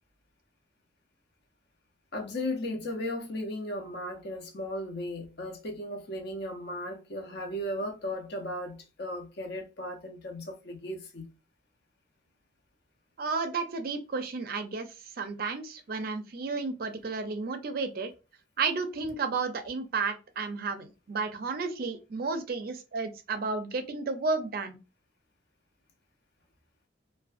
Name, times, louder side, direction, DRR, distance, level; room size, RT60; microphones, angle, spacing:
voice 1, 2.1-11.3, left 1 dB, 55° left, 0.6 m, -36 dB
voice 2, 13.2-14.9 15.2-18.1 18.6-24.8, right 4 dB, 50° right, 0.4 m, -32 dB
2.5 x 2.1 x 2.4 m
head